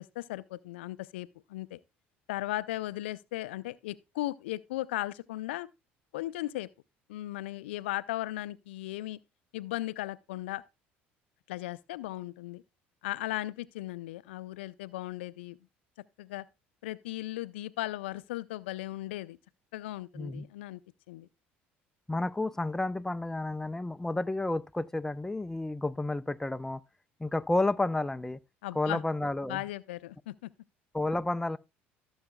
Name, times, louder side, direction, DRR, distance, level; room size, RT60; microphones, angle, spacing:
voice 1, 0.0-1.8 2.3-5.7 6.1-6.7 7.1-9.2 9.5-10.6 11.5-12.6 13.0-15.6 16.2-16.4 16.8-19.4 19.7-20.8 21.1-21.3 28.6-29.0 29.5-30.3, left 16 dB, 80° left, 0.4 m, -37 dB
voice 2, 20.2-20.5 22.1-26.8 27.2-28.4 28.7-29.6 30.9-31.6, left 2 dB, 10° left, 0.5 m, -31 dB
16.0 x 7.1 x 2.2 m
hypercardioid pair, 65°, 6 cm